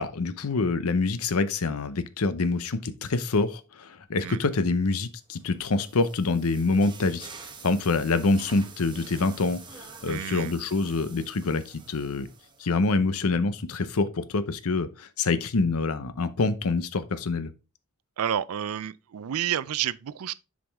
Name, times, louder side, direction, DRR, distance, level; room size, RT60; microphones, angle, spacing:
voice 1, 0.0-7.3 7.6-12.3 12.6-17.5, left 3 dB, 75° left, 0.7 m, -26 dB
sound 1, 5.3-12.9, right 5 dB, 20° right, 0.9 m, -47 dB
voice 2, 10.1-10.5 18.2-20.3, right 10 dB, 75° right, 0.4 m, -30 dB
7.1 x 5.1 x 3.4 m
head